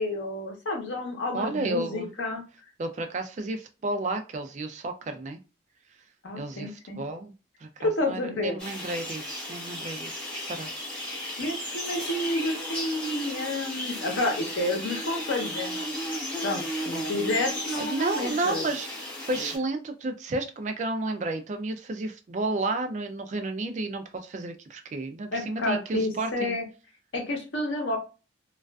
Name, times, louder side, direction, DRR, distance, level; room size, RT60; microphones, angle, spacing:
voice 1, 0.0-2.4 6.2-7.0 8.0-8.6 11.4-18.7 25.3-26.7 27.1-28.0, left 2 dB, 85° left, 2 dB, 0.8 m, -30 dB
voice 2, 1.3-2.1 2.8-5.4 6.4-7.3 7.6-10.9 17.7-26.5, right 2 dB, 40° right, 6 dB, 0.3 m, -32 dB
sound 1, 8.6-19.6, equal, 5° left, 0.9 m, -34 dB
2.4 x 2.3 x 2.2 m, 0.32 s
head